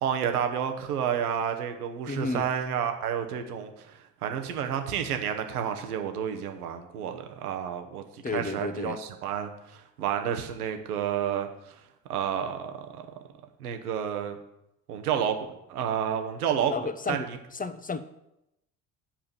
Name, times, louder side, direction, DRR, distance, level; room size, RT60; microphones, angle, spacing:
voice 1, 0.0-11.7 12.1-13.0 13.6-14.4 14.9-16.7 17.1-17.2, right 8 dB, 90° right, 6 dB, 1.2 m, -30 dB
voice 2, 2.1-2.5 8.2-9.0 16.7-18.0, left 4 dB, 20° left, 12 dB, 0.9 m, -32 dB
8.6 x 5.0 x 7.2 m, 0.86 s
hypercardioid pair, 55°, 44 cm